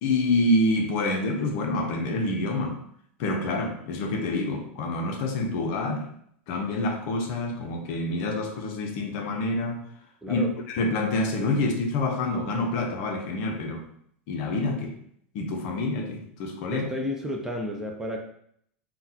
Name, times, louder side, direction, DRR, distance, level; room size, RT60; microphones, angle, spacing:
voice 1, 0.0-2.8 3.2-6.1 6.5-9.8 10.3-10.4 10.7-13.9 14.3-14.9 15.3-16.9, left 2 dB, 55° left, 0.6 m, -27 dB
voice 2, 16.7-18.2, left 1 dB, 5° right, 0.4 m, -31 dB
3.7 x 2.2 x 2.8 m
hypercardioid pair, 125°, 7 cm